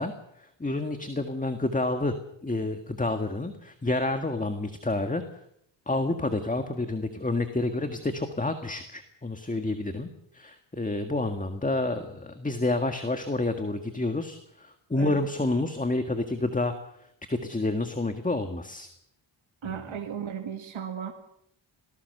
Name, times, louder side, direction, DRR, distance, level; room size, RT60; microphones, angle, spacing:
voice 1, 0.0-2.1 2.4-5.2 5.8-16.7 17.0-18.9 19.6-20.0, left 2 dB, 15° left, 7 dB, 1.7 m, -29 dB
voice 2, 19.6-21.1, right 8 dB, 65° right, 2 dB, 2.3 m, -35 dB
27.0 x 19.0 x 6.7 m, 0.72 s
wide cardioid pair, 115°, 50 cm